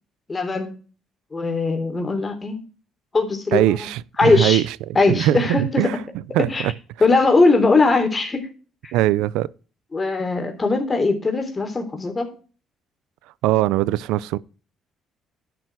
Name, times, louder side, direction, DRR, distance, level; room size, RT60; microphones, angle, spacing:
voice 1, 0.3-0.7 1.3-2.6 3.1-3.9 4.2-4.6 4.9-6.0 6.4-6.7 7.0-8.5 8.8-8.9 9.9-12.3, left 3 dB, 25° left, 3.6 m, -20 dB
voice 2, 3.5-4.7 5.1-5.9 6.3-6.5 8.9-9.5 13.4-14.4, right 15 dB, 90° right, 0.5 m, -20 dB
11.5 x 7.8 x 4.7 m
cardioid pair, 85°, 0 cm